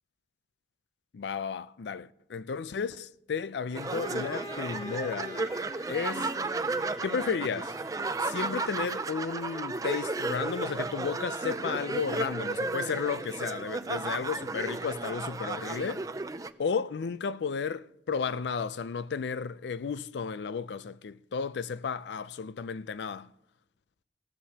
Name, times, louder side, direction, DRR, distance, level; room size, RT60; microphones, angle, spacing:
voice 1, 1.1-5.5 5.9-6.3 7.0-7.8 8.2-16.1 16.6-23.3, left 5 dB, 85° left, 0.4 m, -33 dB
Bowed string instrument, 3.7-8.5, left 1 dB, 30° left, 1.1 m, -46 dB
sound 1, 3.7-16.5, right 3 dB, 20° right, 0.4 m, -34 dB
17.0 x 13.5 x 2.8 m
head